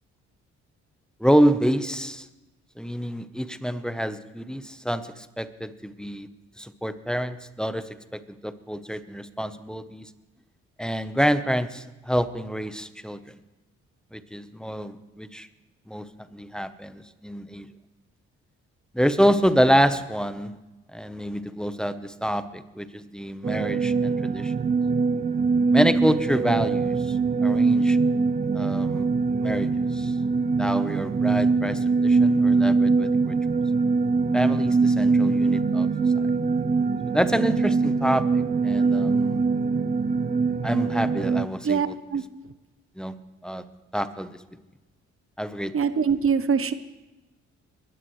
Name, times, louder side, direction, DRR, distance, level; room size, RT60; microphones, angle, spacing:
voice 1, 1.2-2.3 2.8-6.3 6.6-10.1 10.8-13.2 14.1-15.5 15.9-17.7 18.9-20.5 20.9-24.5 25.7-28.0 28.5-29.1 29.4-30.1 30.6-33.4 34.3-35.9 37.1-39.4 40.6-41.9 43.0-43.2 43.4-43.6 43.9-44.4 45.4-45.7, equal, ahead, 11 dB, 1.0 m, -27 dB
sound 1, 23.4-41.5, right 4 dB, 25° right, 0.6 m, -23 dB
voice 2, 41.6-42.2 45.7-46.7, right 6 dB, 45° right, 13 dB, 0.9 m, -23 dB
22.0 x 12.5 x 3.3 m, 1.1 s
supercardioid pair, 55°, 30 cm